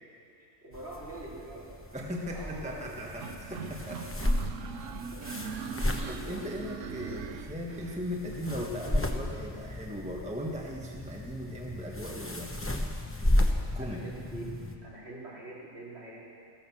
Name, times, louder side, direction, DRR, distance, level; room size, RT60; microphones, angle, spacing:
voice 1, 0.4-1.8 2.3-3.3 5.1-5.5 5.9-6.2 13.8-14.4 14.8-16.2, right 2 dB, 50° right, -6 dB, 3.8 m, -45 dB
sound 1, 0.7-14.7, left 1 dB, 10° left, 0.8 m, -34 dB
voice 2, 1.9-4.0 4.6-4.7 6.0-12.7 13.7-14.0, equal, 5° right, -2 dB, 1.3 m, -38 dB
sound 2, 3.2-8.0, right 7 dB, 70° right, 1.0 m, -40 dB
16.0 x 12.5 x 7.1 m, 2.4 s
omnidirectional pair, 1.4 m